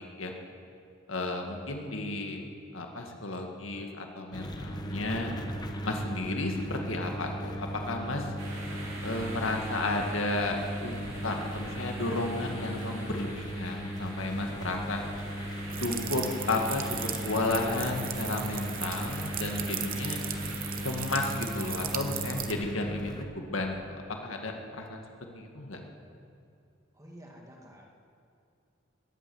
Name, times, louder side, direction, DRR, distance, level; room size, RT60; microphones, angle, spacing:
voice 1, 1.1-2.4 2.7-5.3 5.8-8.3 9.0-10.6 10.8-11.0 11.2-15.0 15.8-17.0 17.2-20.2 20.8-25.0 25.4-25.8, left 2 dB, 80° left, 3 dB, 1.9 m, -33 dB
sound 1, 4.3-23.3, equal, 20° left, 1.1 m, -37 dB
sound 2, 8.4-22.0, right 1 dB, 75° right, 4.4 m, -44 dB
sound 3, 15.7-22.5, right 10 dB, 45° right, 1.0 m, -37 dB
voice 2, 26.9-27.9, equal, 15° right, -1 dB, 2.0 m, -50 dB
21.0 x 8.7 x 7.9 m, 2.4 s
head